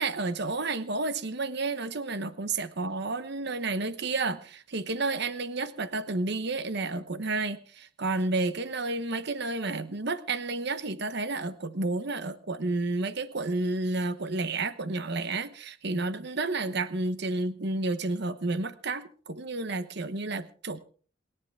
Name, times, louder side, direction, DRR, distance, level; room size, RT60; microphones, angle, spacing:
voice 1, 0.0-20.8, right 3 dB, 55° right, 12 dB, 1.0 m, -31 dB
27.5 x 10.5 x 3.5 m, 0.43 s
head